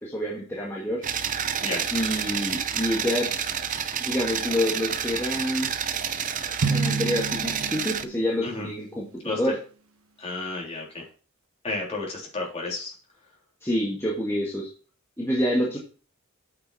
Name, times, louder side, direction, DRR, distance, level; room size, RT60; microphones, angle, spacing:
voice 1, 0.0-1.0 1.9-3.3 4.0-5.7 6.6-9.6 13.6-14.7 15.2-15.8, equal, 10° left, -5 dB, 1.6 m, -27 dB
sound 1, 1.0-8.0, right 8 dB, 35° right, 0.6 m, -29 dB
Drum, 6.6-8.8, right 4 dB, 80° right, 1.1 m, -30 dB
voice 2, 10.2-11.0 11.6-12.9, left 2 dB, 30° left, -2 dB, 3.3 m, -31 dB
8.5 x 6.1 x 4.2 m, 0.38 s
head